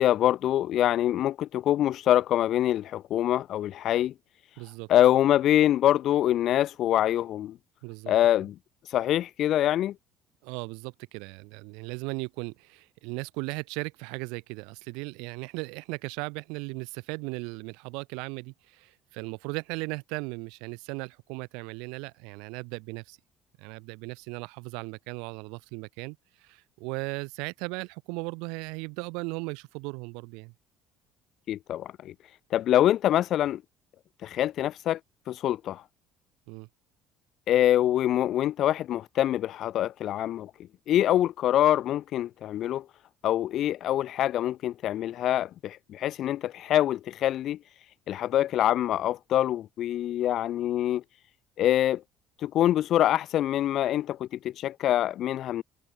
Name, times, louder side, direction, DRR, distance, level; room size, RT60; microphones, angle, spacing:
voice 1, 0.0-4.1 4.9-7.5 8.1-8.5 8.9-9.9 31.5-32.1 32.5-33.6 34.2-35.0 35.3-35.8 37.5-40.5 40.9-42.8 43.2-47.6 48.1-51.0 51.6-52.0 52.4-55.6, left 12 dB, 55° left, 2.1 m, -25 dB
voice 2, 4.6-4.9 7.8-8.1 10.4-23.2 23.6-30.5 36.5-36.7, right 30 dB, 65° right, 4.0 m, -37 dB
figure-of-eight pair, 55°, 0 cm